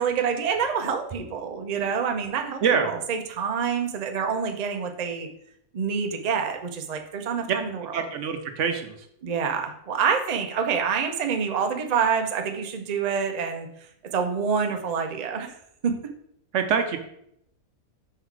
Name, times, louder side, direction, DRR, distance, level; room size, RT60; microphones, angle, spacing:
voice 1, 0.0-5.3 5.7-8.0 9.2-13.7 14.1-15.5 15.8-16.0, right 6 dB, 50° right, 4 dB, 0.5 m, -27 dB
voice 2, 7.9-9.0 16.5-17.0, right 6 dB, 65° right, 7 dB, 0.9 m, -24 dB
5.4 x 4.0 x 4.6 m, 0.74 s
omnidirectional pair, 1.5 m